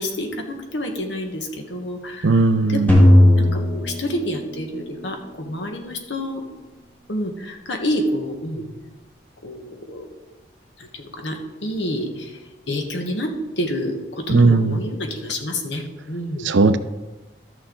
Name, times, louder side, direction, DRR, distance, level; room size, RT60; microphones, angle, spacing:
voice 1, 0.0-2.4 2.7-3.1 3.4-6.4 7.1-8.6 9.4-10.0 10.8-12.3 12.7-16.5, equal, 80° left, 3 dB, 1.4 m, -28 dB
voice 2, 2.2-3.0 14.3-14.8 16.4-16.8, right 3 dB, 90° right, 12 dB, 0.6 m, -17 dB
sound 1, 2.9-5.1, left 1 dB, 10° left, 1.3 m, -15 dB
13.0 x 6.4 x 3.9 m, 1.2 s
head